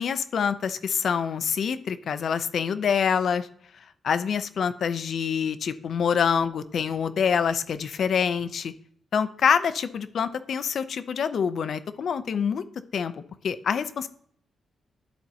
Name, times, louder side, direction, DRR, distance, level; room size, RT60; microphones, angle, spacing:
voice 1, 0.0-3.5 4.0-8.7 9.1-12.6 12.9-13.1 13.4-14.1, left 7 dB, 55° left, 12 dB, 0.5 m, -26 dB
13.0 x 4.4 x 2.8 m, 0.63 s
wide cardioid pair, 165°, 0 cm